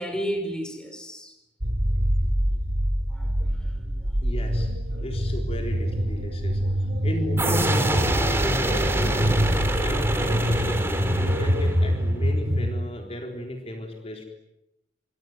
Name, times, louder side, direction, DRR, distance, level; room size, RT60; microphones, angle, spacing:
voice 1, 0.0-1.3 3.1-3.9 4.3-4.4 4.9-5.1 9.2-9.5, equal, 5° left, 7 dB, 4.9 m, -33 dB
sound 1, 1.6-12.7, equal, 60° right, 3.7 m, -25 dB
voice 2, 4.2-4.7 5.0-9.4 9.8-14.2, left 1 dB, 35° left, 3 dB, 3.9 m, -34 dB
sound 2, 7.4-12.0, right 1 dB, 15° right, 3.5 m, -25 dB
26.5 x 23.5 x 9.4 m, 0.88 s
head